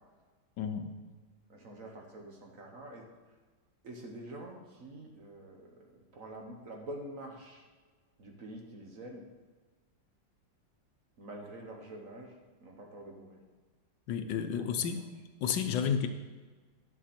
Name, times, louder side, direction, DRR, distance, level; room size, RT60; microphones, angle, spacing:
voice 1, 0.6-0.9 14.1-15.0 15.4-16.1, left 7 dB, 75° left, 8 dB, 1.3 m, -31 dB
voice 2, 1.5-3.0 3.8-7.7 8.2-9.3 11.2-12.3 12.6-13.4, right 1 dB, 50° right, 1 dB, 1.5 m, -46 dB
11.0 x 6.9 x 4.3 m, 1.4 s
omnidirectional pair, 2.1 m